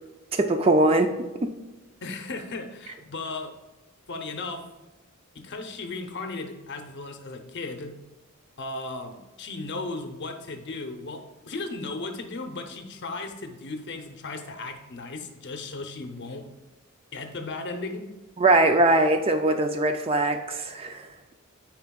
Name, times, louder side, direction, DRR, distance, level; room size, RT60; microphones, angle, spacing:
voice 1, 0.3-1.1 1.4-1.5 18.4-21.1, right 2 dB, 25° right, 6 dB, 0.4 m, -21 dB
voice 2, 2.0-3.5 4.1-4.6 5.3-7.9 8.6-16.5 17.1-18.1, left 3 dB, 55° left, 6 dB, 0.7 m, -36 dB
9.3 x 4.5 x 2.3 m, 1.1 s
head